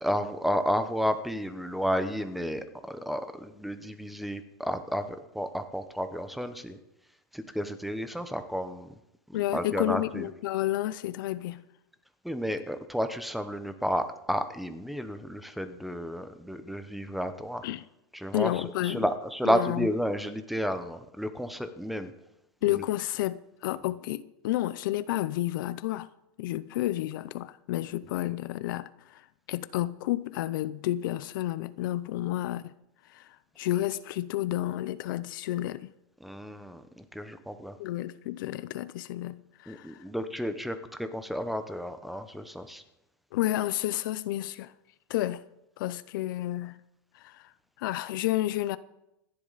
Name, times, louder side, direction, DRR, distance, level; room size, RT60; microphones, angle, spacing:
voice 1, 0.0-6.8 7.3-8.9 9.3-10.3 12.2-17.6 18.1-22.1 22.7-22.8 36.2-37.8 39.7-42.8, equal, ahead, 0.9 m, -32 dB
voice 2, 9.3-11.6 17.6-17.8 18.3-19.1 19.4-19.9 22.6-26.1 26.4-32.7 33.1-35.9 37.8-40.0 43.3-44.7 45.1-45.4 45.8-46.8 47.1-47.5 47.8-48.8, left 15 dB, 60° left, 0.6 m, -31 dB
26.0 x 11.0 x 4.1 m
supercardioid pair, 155°, 12 cm